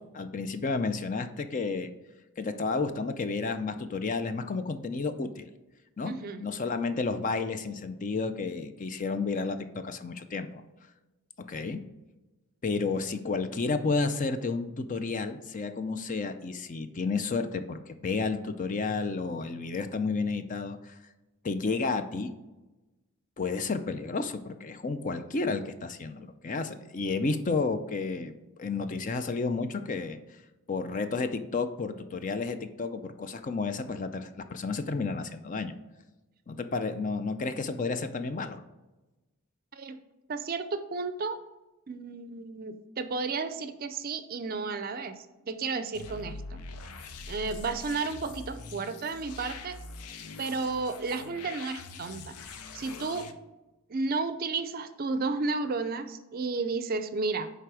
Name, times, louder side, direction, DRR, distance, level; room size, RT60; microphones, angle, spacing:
voice 1, 0.0-1.9 2.4-5.5 6.0-6.1 6.4-10.6 11.4-11.8 12.6-21.0 21.4-22.3 23.4-28.3 28.6-30.2 30.7-35.7 36.5-38.6, left 4 dB, 35° left, 9 dB, 0.4 m, -31 dB
voice 2, 6.1-6.4 39.7-40.0 40.3-41.4 41.9-46.6 47.3-49.8 50.4-53.3 53.9-57.5, right 4 dB, 40° right, 11 dB, 0.5 m, -33 dB
sound 1, 45.9-53.3, left 3 dB, 85° left, 0.6 m, -43 dB
9.4 x 3.4 x 4.8 m, 1.1 s
head